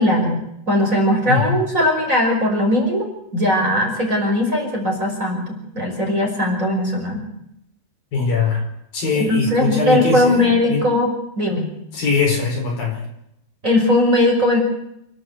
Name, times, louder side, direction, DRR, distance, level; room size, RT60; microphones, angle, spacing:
voice 1, 0.0-7.2 9.2-11.7 13.6-14.6, left 1 dB, 15° right, 0 dB, 5.6 m, -19 dB
voice 2, 8.1-8.7 8.9-10.9 11.9-13.0, left 5 dB, 50° left, 1 dB, 6.1 m, -21 dB
29.5 x 12.0 x 8.0 m, 0.79 s
omnidirectional pair, 5.4 m